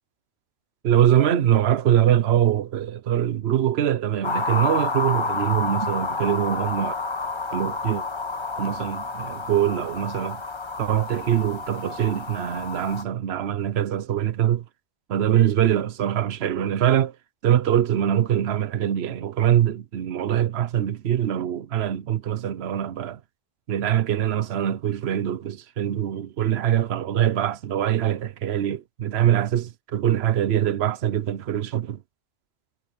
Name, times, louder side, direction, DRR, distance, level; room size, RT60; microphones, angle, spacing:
voice 1, 0.8-6.9 7.5-8.0 8.6-10.4 10.8-14.6 15.1-17.1 17.4-23.2 23.7-32.0, right 10 dB, 75° right, 1.0 m, -23 dB
sound 1, 4.2-13.0, left 3 dB, 25° left, 1.0 m, -29 dB
omnidirectional pair, 1.1 m